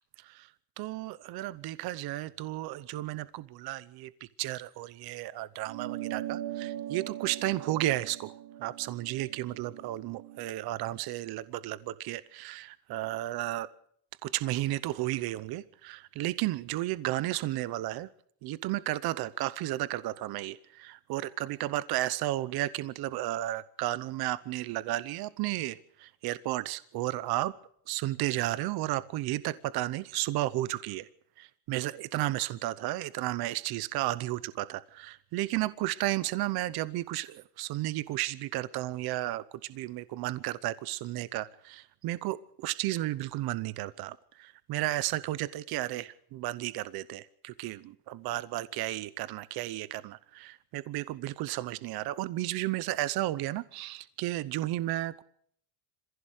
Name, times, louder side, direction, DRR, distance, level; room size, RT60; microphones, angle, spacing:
voice 1, 0.2-0.5 0.8-4.1 4.4-13.7 14.2-18.1 18.4-27.5 27.9-31.1 31.4-55.2, right 16 dB, 55° right, 16 dB, 0.9 m, -33 dB
sound 1, 5.7-10.5, right 13 dB, 75° right, 2.1 m, -40 dB
25.5 x 16.0 x 6.5 m, 0.66 s
cardioid pair, 150°, 44 cm